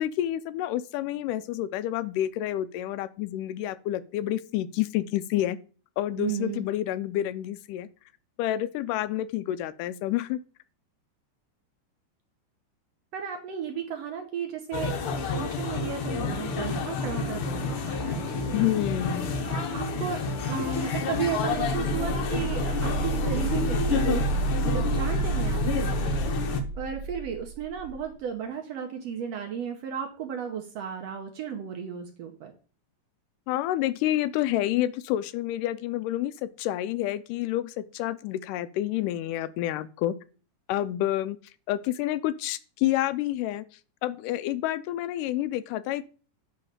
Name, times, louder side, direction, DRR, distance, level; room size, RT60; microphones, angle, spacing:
voice 1, 0.0-5.6 6.0-7.9 8.4-10.4 18.5-19.3 33.5-40.2 40.7-41.4 41.7-43.7 44.0-46.0, left 13 dB, 85° left, 2.2 m, -29 dB
voice 2, 6.2-6.6 13.1-18.6 19.4-26.3 26.8-32.5, right 7 dB, 70° right, 1.6 m, -35 dB
sound 1, 14.7-26.6, left 4 dB, 70° left, 1.4 m, -29 dB
sound 2, 21.3-28.0, right 3 dB, 35° right, 1.8 m, -30 dB
9.1 x 3.1 x 6.6 m
omnidirectional pair, 3.7 m